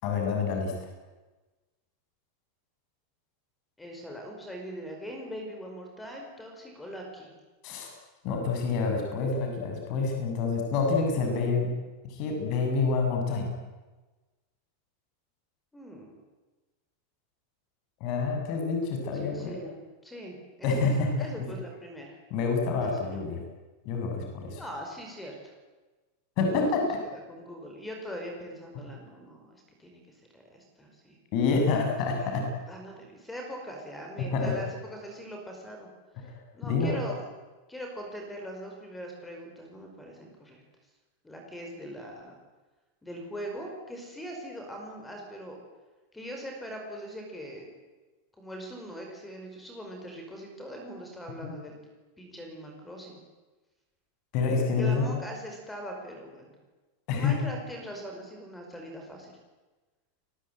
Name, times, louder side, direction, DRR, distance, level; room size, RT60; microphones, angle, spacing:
voice 1, 0.0-0.9 7.6-7.9 8.2-11.7 12.0-13.5 18.0-19.6 20.6-21.5 22.3-23.4 23.8-24.6 26.4-27.0 31.3-32.5 34.2-34.5 36.2-36.3 36.6-37.0 51.4-51.5 54.3-55.1 57.1-57.4, left 4 dB, 40° left, 2 dB, 7.7 m, -27 dB
voice 2, 3.8-7.3 15.7-16.1 19.2-20.9 21.2-22.2 23.0-23.3 24.6-25.5 26.4-26.6 27.0-30.0 30.3-31.2 32.1-35.9 36.5-37.2 37.7-40.6 41.2-42.4 43.0-45.6 46.1-47.7 48.4-51.7 52.2-53.2 54.7-56.5 57.1-59.4, equal, 5° left, 2 dB, 5.1 m, -41 dB
29.5 x 21.5 x 9.3 m, 1.2 s
supercardioid pair, 170°, 0 cm